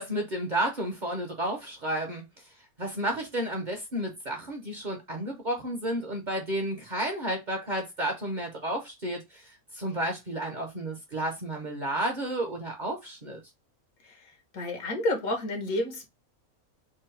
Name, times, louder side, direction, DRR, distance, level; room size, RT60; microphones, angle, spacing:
voice 1, 0.0-2.2 2.8-13.4, right 1 dB, 40° right, 0.8 m, -32 dB
voice 2, 14.5-16.1, left 1 dB, 75° left, 1.6 m, -30 dB
3.8 x 2.2 x 4.4 m
omnidirectional pair, 1.5 m